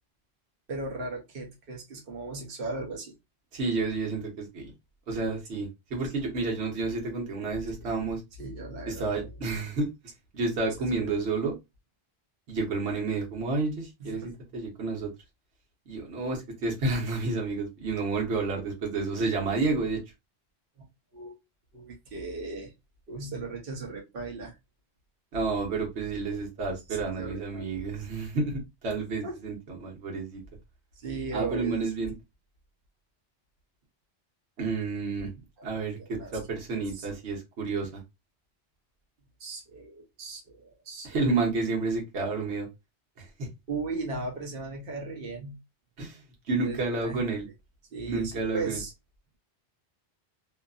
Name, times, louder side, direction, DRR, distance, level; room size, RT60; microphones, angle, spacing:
voice 1, 0.7-3.1 8.4-9.3 10.8-11.1 14.0-14.2 21.1-21.3 21.7-22.7 23.1-24.6 26.6-27.7 29.2-29.4 31.0-31.9 35.6-35.7 36.0-36.4 36.9-37.1 39.4-41.1 43.7-45.6 46.6-47.2 47.9-48.9, right 3 dB, 60° right, 1.0 m, -37 dB
voice 2, 3.5-4.7 5.1-8.2 8.8-9.9 10.3-11.6 12.5-15.1 15.9-20.0 25.3-30.4 31.3-32.1 34.6-35.3 35.6-38.0 41.0-42.7 43.2-43.5 46.0-46.2 46.5-47.5 48.0-48.8, right 3 dB, 80° right, 1.2 m, -30 dB
2.8 x 2.4 x 2.3 m
omnidirectional pair, 1.1 m